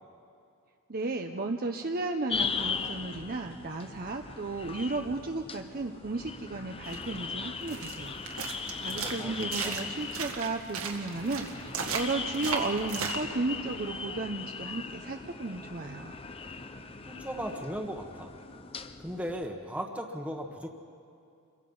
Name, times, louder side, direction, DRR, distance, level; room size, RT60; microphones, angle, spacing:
voice 1, 0.9-8.2 8.5-16.1, right 3 dB, 45° right, 3 dB, 0.8 m, -34 dB
sound 1, 2.3-19.5, left 5 dB, 25° left, 0.7 m, -39 dB
sound 2, 6.8-13.2, right 5 dB, 75° right, 2.0 m, -37 dB
voice 2, 8.9-10.0 17.0-18.3 19.0-20.7, equal, 5° right, 1 dB, 1.3 m, -37 dB
28.5 x 23.0 x 5.5 m, 2.5 s
head